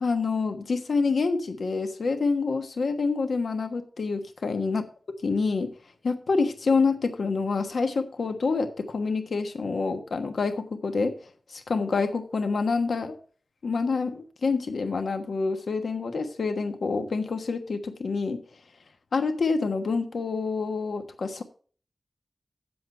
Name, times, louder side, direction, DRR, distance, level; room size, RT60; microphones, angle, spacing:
voice 1, 0.0-4.8 5.2-5.7 6.0-11.1 11.5-13.2 13.6-18.4 19.1-21.4, left 4 dB, 80° left, 6 dB, 1.3 m, -27 dB
8.0 x 7.7 x 5.6 m, 0.43 s
wide cardioid pair, 115°, 0 cm